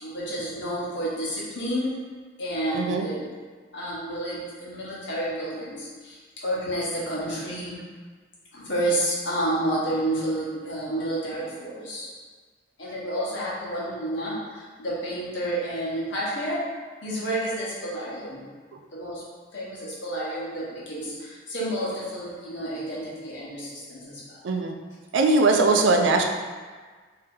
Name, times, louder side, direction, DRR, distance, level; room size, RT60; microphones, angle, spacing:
voice 1, 0.0-1.9 2.4-3.3 3.7-7.8 8.5-12.1 12.8-16.7 17.0-18.5 18.9-19.3 19.5-24.4 25.4-25.8, right 1 dB, 80° left, -7 dB, 1.1 m, -30 dB
voice 2, 2.7-3.1 24.4-24.8 25.1-26.2, right 3 dB, 90° right, 3 dB, 0.4 m, -20 dB
2.9 x 2.8 x 3.7 m, 1.5 s
head